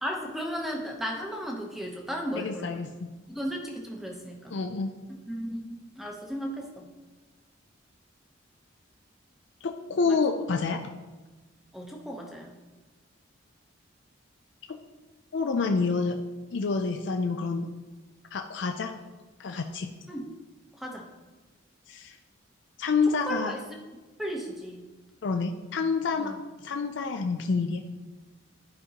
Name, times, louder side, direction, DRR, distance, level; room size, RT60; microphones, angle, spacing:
voice 1, 0.0-2.9 3.3-4.5 5.3-6.9 10.1-10.2 11.7-12.6 20.1-20.3 20.8-21.1 23.3-23.6 24.2-24.8 26.2-26.4, equal, ahead, 0 dB, 0.8 m, -35 dB
voice 2, 2.4-3.1 4.5-4.9 9.6-10.8 14.7-14.8 15.3-16.2 16.5-17.7 18.3-18.9 19.4-19.9 21.9-22.2 22.8-23.5 25.2-26.3 26.6-27.8, left 4 dB, 65° left, 4 dB, 0.4 m, -28 dB
11.0 x 5.1 x 2.9 m, 1.2 s
head